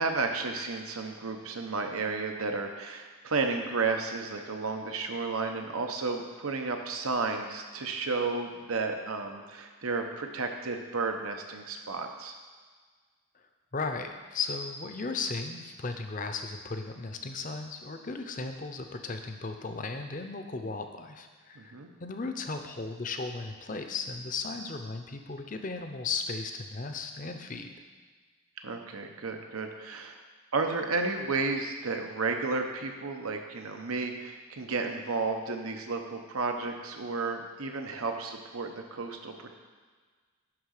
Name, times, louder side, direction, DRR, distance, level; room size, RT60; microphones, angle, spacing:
voice 1, 0.0-12.3 21.6-21.9 28.6-30.2 30.5-39.6, right 4 dB, 90° right, 4 dB, 0.9 m, -32 dB
voice 2, 13.7-27.7, left 4 dB, 40° left, 6 dB, 0.6 m, -36 dB
11.0 x 3.8 x 6.5 m, 1.5 s
head